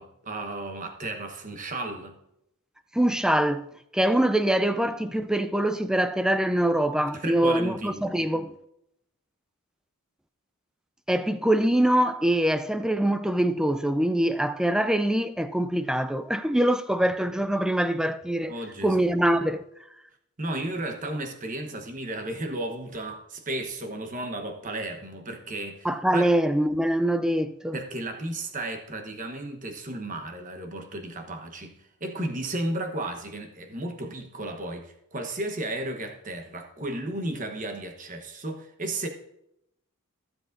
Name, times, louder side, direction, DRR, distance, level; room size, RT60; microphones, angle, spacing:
voice 1, 0.0-2.2 7.1-8.1 18.5-19.1 20.4-26.2 27.7-39.1, right 1 dB, 35° right, 1.1 m, -34 dB
voice 2, 2.9-3.7 3.9-8.5 11.1-18.5 18.8-19.6 25.8-27.8, right 1 dB, 5° right, 0.4 m, -24 dB
15.0 x 7.7 x 2.6 m
head